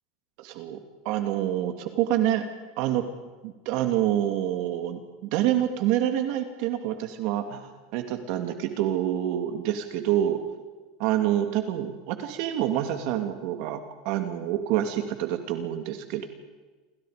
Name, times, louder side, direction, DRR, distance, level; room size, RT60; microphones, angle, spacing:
voice 1, 0.4-0.8 1.0-2.4 2.8-3.0 3.4-10.4 11.0-13.8 14.0-16.3, right 12 dB, 55° right, 7 dB, 2.5 m, -27 dB
29.0 x 25.0 x 5.2 m, 1.3 s
supercardioid pair, 160°, 0 cm